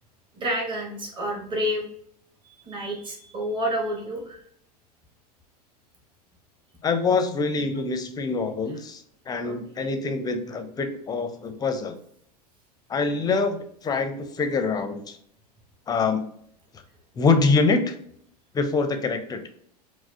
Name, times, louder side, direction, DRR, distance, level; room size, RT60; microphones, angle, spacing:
voice 1, 0.3-1.8 2.4-4.4 9.4-9.6, equal, 25° right, -1 dB, 1.2 m, -29 dB
voice 2, 6.8-12.0 12.9-15.2 15.9-16.2 17.1-18.0 18.5-19.5, left 4 dB, 20° left, 8 dB, 0.5 m, -25 dB
4.6 x 2.0 x 2.7 m, 0.66 s
hypercardioid pair, 95°, 21 cm